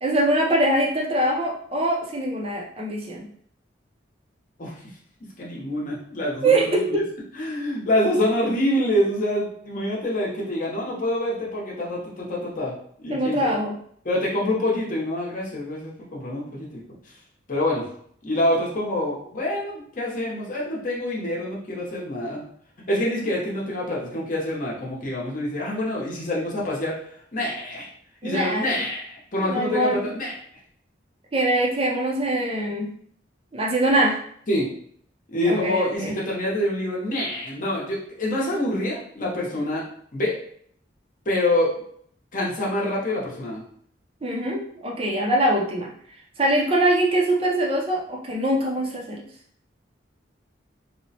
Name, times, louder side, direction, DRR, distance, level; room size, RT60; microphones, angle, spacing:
voice 1, 0.0-3.2 6.4-7.0 13.1-13.7 28.2-28.7 29.5-30.0 31.3-32.9 33.5-34.2 35.4-36.1 44.2-45.9 46.4-49.2, right 1 dB, 30° right, -2 dB, 0.5 m, -23 dB
voice 2, 5.4-7.0 7.4-12.7 13.0-13.5 14.0-16.8 17.5-17.8 18.2-22.4 22.9-27.0 27.3-27.9 28.2-30.3 34.5-34.7 35.3-39.8 40.1-40.4 41.2-41.7 42.3-43.6, left 1 dB, 40° left, -4 dB, 0.7 m, -26 dB
2.9 x 2.0 x 2.7 m, 0.62 s
head